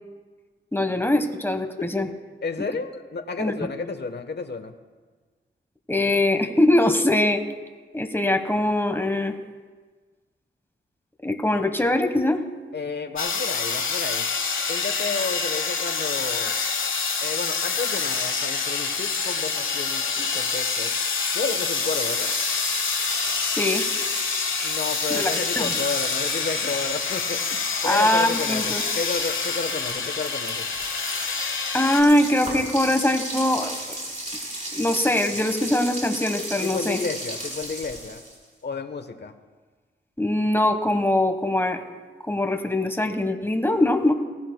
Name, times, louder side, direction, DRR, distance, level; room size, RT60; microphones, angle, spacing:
voice 1, 0.7-2.1 2.6-2.7 3.4-3.5 5.9-7.4 7.9-9.3 11.2-12.4 23.5-23.8 25.1-25.7 27.8-28.8 31.7-33.9 34.7-37.0 40.2-41.8 42.2-44.1, left 1 dB, 10° left, 6 dB, 1.2 m, -22 dB
voice 2, 2.4-4.7 12.7-14.3 14.7-16.6 17.2-20.9 21.3-22.3 24.6-30.7 36.6-38.2 38.6-39.3, left 4 dB, 55° left, 8 dB, 1.1 m, -31 dB
sound 1, 13.2-32.0, left 5 dB, 75° left, 1.2 m, -27 dB
sound 2, 21.6-38.4, right 1 dB, 35° right, 4.4 m, -35 dB
18.5 x 15.0 x 2.3 m, 1.4 s
cardioid pair, 60°, 21 cm